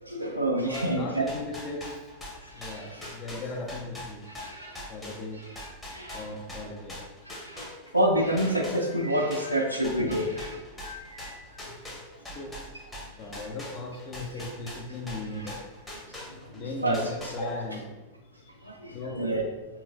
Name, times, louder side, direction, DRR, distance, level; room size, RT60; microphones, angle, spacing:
voice 1, 0.0-1.2 2.4-3.1 4.3-4.9 5.3-6.3 7.3-11.6 15.3-15.5 16.8-17.5 18.6-19.4, right 1 dB, 85° right, 0 dB, 0.3 m, -29 dB
voice 2, 0.5-2.0 2.5-4.2 4.9-5.4 6.1-7.0 12.3-12.6 12.9-15.6 16.5-17.9 18.9-19.3, left 2 dB, 35° left, 0 dB, 0.5 m, -37 dB
sound 1, 0.7-8.1 8.4-16.6 16.9-17.8, left 1 dB, 10° left, 0.8 m, -42 dB
3.6 x 3.0 x 2.4 m, 1.2 s
figure-of-eight pair, 90°, 0 cm